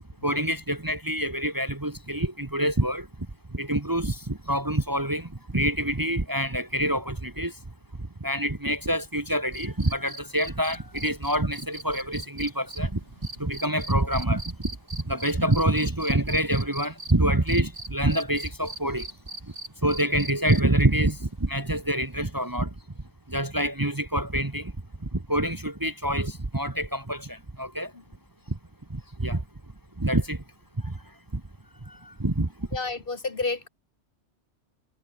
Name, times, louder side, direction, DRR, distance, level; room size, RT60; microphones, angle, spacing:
voice 1, 0.2-3.1 3.5-7.5 8.2-13.0 13.4-14.4 15.0-19.1 19.8-22.7 23.3-24.7 25.1-27.9 28.5-28.6 28.9-29.4 30.0-30.4 30.8-31.0 31.3-31.4 31.9-32.5, right 1 dB, 20° right, 1.2 m, -26 dB
sound 1, 9.5-17.1 17.5-20.8 22.5-22.6, right 2 dB, 90° right, 6.9 m, -40 dB
voice 2, 32.7-33.7, left 3 dB, 50° left, 1.9 m, -29 dB
omnidirectional pair, 1.2 m